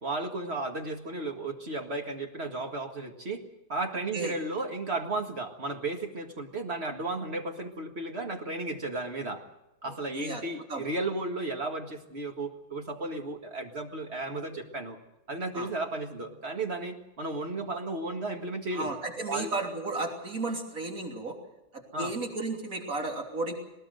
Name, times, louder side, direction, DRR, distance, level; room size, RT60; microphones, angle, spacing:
voice 1, 0.0-3.4 3.7-9.4 9.8-15.0 15.3-18.9 19.3-19.5 21.9-22.1, right 2 dB, 40° right, 4 dB, 2.0 m, -34 dB
voice 2, 9.8-10.4 10.7-10.8 15.5-15.7 18.7-21.4 21.7-23.5, right 2 dB, 55° right, 1 dB, 3.7 m, -34 dB
20.5 x 19.0 x 7.9 m, 0.91 s
omnidirectional pair, 1.7 m